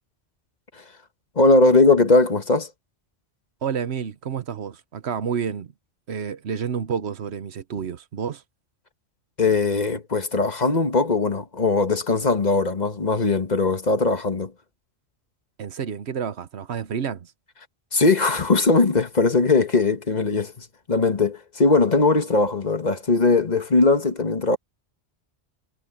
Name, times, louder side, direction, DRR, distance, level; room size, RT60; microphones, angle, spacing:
voice 1, 1.3-2.7 9.4-14.5 17.9-24.6, left 3 dB, 40° left, 1.4 m, -20 dB
voice 2, 3.6-5.7 6.1-8.4 15.6-17.3, right 7 dB, 65° right, 1.2 m, -29 dB
omnidirectional pair, 1.2 m